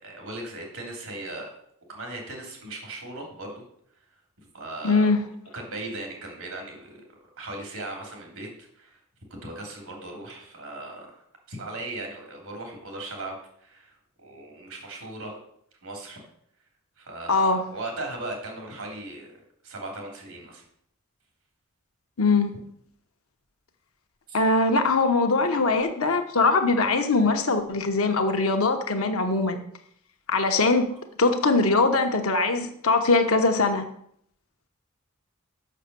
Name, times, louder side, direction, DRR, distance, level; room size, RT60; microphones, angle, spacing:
voice 1, 0.0-1.5 1.9-3.6 4.5-5.1 5.5-7.0 7.4-9.0 9.4-11.2 11.5-15.4 15.8-16.2 17.0-20.6 24.3-24.4, right 2 dB, 80° right, 1 dB, 3.1 m, -38 dB
voice 2, 4.8-5.2 17.3-17.6 22.2-22.5 24.3-29.6 30.3-30.9 31.2-33.8, left 3 dB, 80° left, 6 dB, 1.0 m, -22 dB
6.5 x 6.5 x 6.8 m, 0.68 s
head